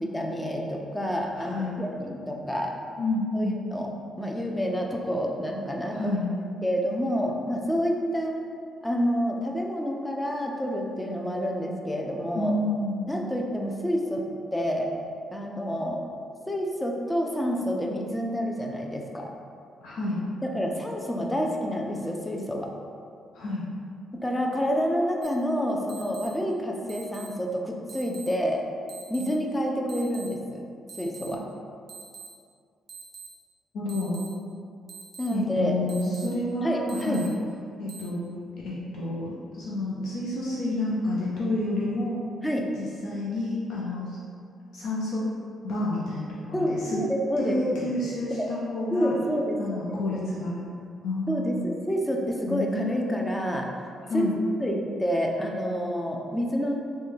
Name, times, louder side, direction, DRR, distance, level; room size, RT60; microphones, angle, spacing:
voice 1, 0.0-2.7 3.3-3.9 4.2-6.1 6.6-8.4 8.8-12.5 13.1-14.2 14.5-14.9 15.3-16.0 16.5-19.3 20.4-22.7 24.2-28.6 29.1-30.6 31.0-31.4 35.2-36.3 36.6-37.2 42.4-42.6 46.5-47.9 48.3-48.5 48.9-49.8 50.1-50.2 51.3-53.7 54.1-54.3 54.6-56.8, equal, 10° left, 0 dB, 0.4 m, -28 dB
voice 2, 1.4-1.8 3.0-3.6 5.9-6.3 12.3-13.1 19.8-20.2 23.3-23.6 33.7-34.2 35.3-37.3 37.8-38.2 38.6-42.2 42.8-44.2 44.7-45.3 45.6-47.0 47.4-49.2 49.6-50.5 51.0-51.6 52.5-53.3 54.1-54.3, left 2 dB, 75° left, -6 dB, 0.5 m, -29 dB
sound 1, 25.2-25.3 25.9-26.3 26.9-27.3 27.9-28.3 28.9-29.3 29.9-30.3 30.9-31.3 31.9-32.3 32.9-33.3 33.9-34.3 34.9-35.3 35.9-36.3 36.9-37.3 37.9-38.0, right 6 dB, 45° right, 0.5 m, -43 dB
3.2 x 2.2 x 3.2 m, 2.3 s
cardioid pair, 90°, 0 cm